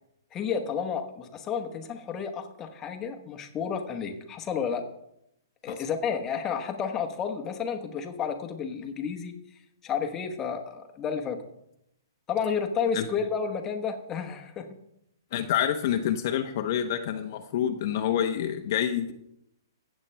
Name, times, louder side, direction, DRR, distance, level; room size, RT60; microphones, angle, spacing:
voice 1, 0.3-4.8 5.6-9.3 9.8-11.4 12.3-14.7, left 6 dB, 20° left, 5 dB, 1.1 m, -31 dB
voice 2, 15.3-19.1, left 10 dB, 45° left, 6 dB, 0.8 m, -27 dB
15.0 x 8.2 x 3.3 m, 0.79 s
hypercardioid pair, 150°, 2 cm